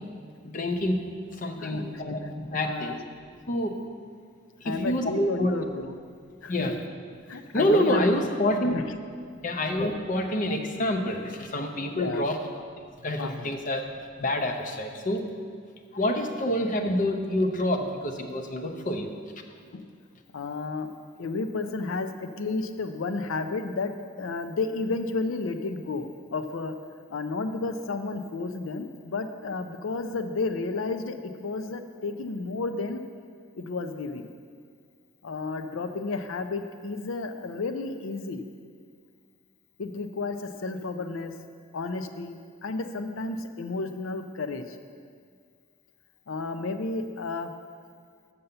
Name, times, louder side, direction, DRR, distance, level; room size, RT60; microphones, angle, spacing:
voice 1, 0.4-1.0 1.4-3.0 3.5-3.7 4.6-5.5 6.5-6.7 7.3-8.7 9.4-12.4 13.0-13.9 14.2-15.2 15.9-19.1, left 1 dB, 40° left, 5 dB, 0.7 m, -27 dB
voice 2, 1.6-2.3 2.6-3.0 4.6-6.0 6.4-6.7 7.3-8.3 8.7-8.8 11.9-12.3 13.2-13.5 19.7-19.9 20.3-26.7 27.1-33.0 33.6-34.3 35.2-38.4 39.8-41.3 41.7-42.4 42.6-44.8 46.3-47.5, left 3 dB, 80° left, 9 dB, 0.5 m, -32 dB
6.9 x 5.5 x 6.7 m, 2.1 s
head